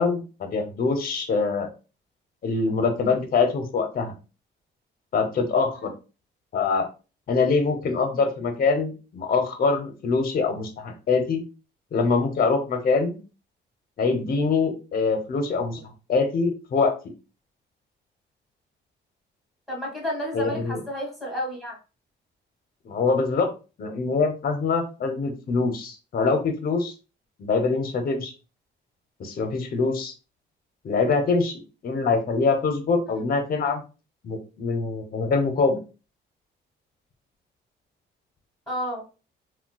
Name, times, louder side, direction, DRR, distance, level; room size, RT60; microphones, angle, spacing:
voice 1, 0.0-1.7 2.4-4.1 5.1-5.9 6.5-6.9 7.3-11.4 11.9-13.2 14.0-15.8 16.1-16.9 20.3-20.8 22.8-23.5 23.8-26.9 27.4-28.3 29.2-30.1 30.8-33.8 34.2-35.8, left 4 dB, 50° left, 6 dB, 0.7 m, -24 dB
voice 2, 19.7-21.8 38.7-39.0, equal, ahead, -3 dB, 1.6 m, -31 dB
3.8 x 2.2 x 2.2 m, 0.33 s
cardioid pair, 90°, 20 cm